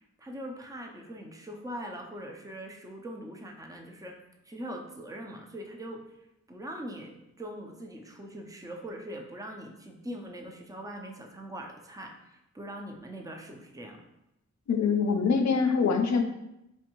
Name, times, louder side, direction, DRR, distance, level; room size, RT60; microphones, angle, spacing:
voice 1, 0.0-4.2 4.4-6.0 6.5-14.0, equal, 10° right, 2 dB, 0.5 m, -42 dB
voice 2, 14.7-16.2, left 5 dB, 70° left, 6 dB, 0.5 m, -24 dB
4.5 x 2.5 x 2.9 m, 0.86 s
wide cardioid pair, 70°, 30 cm